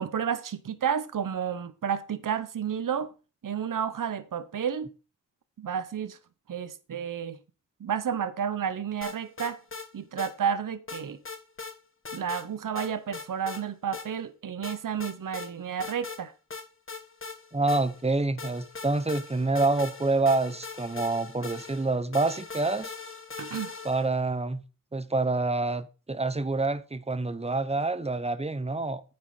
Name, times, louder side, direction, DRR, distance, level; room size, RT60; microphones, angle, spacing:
voice 1, 0.0-3.1 3.4-4.9 5.6-6.2 6.5-7.4 7.8-9.6 9.9-11.2 12.1-16.3 23.4-23.7, right 8 dB, 70° right, 0.8 m, -31 dB
sound 1, 9.0-9.9 10.2-10.3 10.9-11.7 12.0-12.5 12.8-13.6 13.9-14.1 14.6-15.5 15.8-16.2 16.5-18.1 18.4-24.1, left 4 dB, 40° left, 1.5 m, -40 dB
voice 2, 17.5-22.9 23.8-24.6 24.9-29.0, right 3 dB, 20° right, 0.9 m, -27 dB
9.1 x 5.3 x 5.5 m
wide cardioid pair, 65°, 33 cm